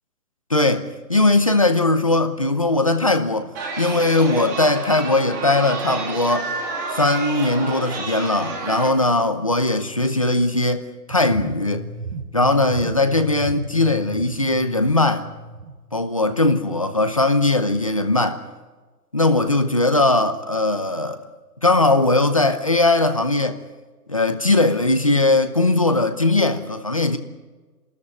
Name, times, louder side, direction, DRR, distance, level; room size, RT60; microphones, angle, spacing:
voice 1, 0.5-3.5 3.8-6.5 7.0-11.8 12.3-15.3 15.9-18.4 19.1-21.2 21.6-23.6 24.1-27.2, left 2 dB, 20° left, 0.7 m, -19 dB
Chatter, 3.5-8.9, right 3 dB, 10° right, 1.6 m, -30 dB
sound 1, 11.1-17.1, right 2 dB, 60° right, 5.7 m, -36 dB
27.5 x 13.5 x 9.7 m
hypercardioid pair, 175°, 48 cm